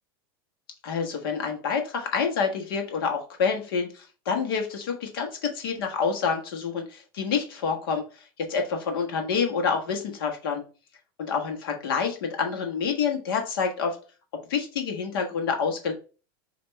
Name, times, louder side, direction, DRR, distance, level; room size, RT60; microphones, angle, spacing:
voice 1, 0.8-10.6 11.2-14.0 14.5-15.9, left 5 dB, 75° left, 2 dB, 1.3 m, -28 dB
5.6 x 2.8 x 3.1 m, 0.35 s
supercardioid pair, 180°, 12 cm